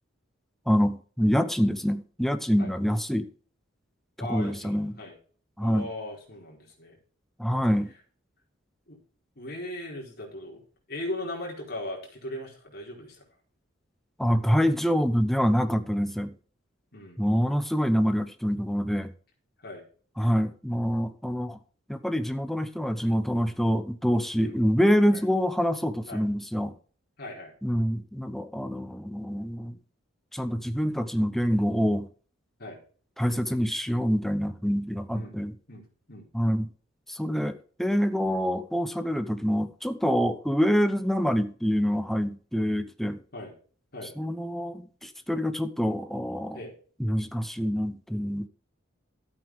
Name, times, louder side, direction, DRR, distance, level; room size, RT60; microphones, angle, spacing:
voice 1, 0.7-3.3 4.2-5.0 5.6-5.9 7.4-7.9 14.2-16.4 17.2-19.1 20.2-21.6 21.9-26.7 27.6-29.8 30.3-32.1 33.2-35.5 36.3-36.7 37.1-43.2 44.2-46.6 47.0-48.5, equal, ahead, 0.8 m, -26 dB
voice 2, 4.2-5.2 5.6-7.0 8.9-9.0 9.4-10.6 10.9-13.2 16.9-17.2 19.6-19.8 24.4-24.6 25.1-25.2 26.1-26.2 27.2-27.5 32.6-32.8 35.1-35.4 35.7-36.3 43.3-43.5 43.9-44.1 46.5-46.7, left 1 dB, 50° left, 4.3 m, -38 dB
13.0 x 8.5 x 3.7 m
head